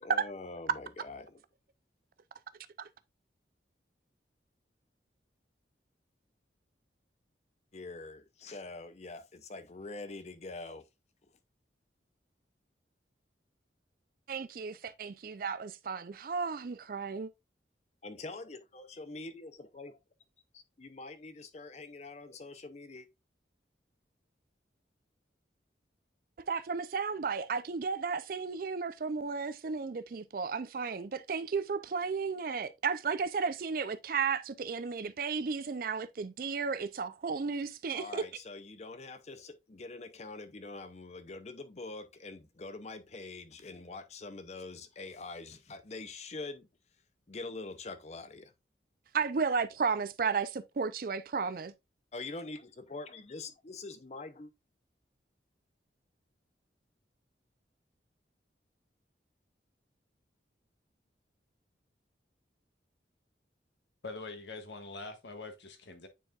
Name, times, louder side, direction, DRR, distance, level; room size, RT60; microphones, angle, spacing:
voice 1, 0.0-1.4 7.7-10.8 18.0-19.9 20.8-23.1 37.9-46.7 47.3-48.5 52.1-54.5, left 3 dB, 40° left, 0.6 m, -44 dB
voice 2, 14.3-17.3 26.5-38.3 49.1-51.7, right 5 dB, 50° right, 0.4 m, -33 dB
voice 3, 64.0-66.1, left 3 dB, 80° left, 1.4 m, -44 dB
9.0 x 4.6 x 2.4 m
head